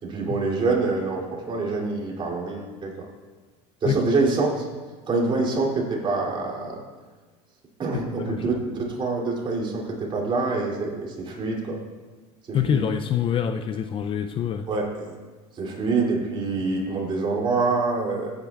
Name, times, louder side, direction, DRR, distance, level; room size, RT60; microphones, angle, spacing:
voice 1, 0.0-3.0 3.8-4.6 5.1-6.8 7.8-11.8 12.5-12.8 14.7-15.2 15.6-18.3, right 3 dB, 35° right, -2 dB, 2.8 m, -26 dB
voice 2, 7.9-8.4 12.5-14.7, left 8 dB, 35° left, 8 dB, 0.4 m, -26 dB
15.0 x 9.0 x 2.4 m, 1.3 s
supercardioid pair, 105°, 15 cm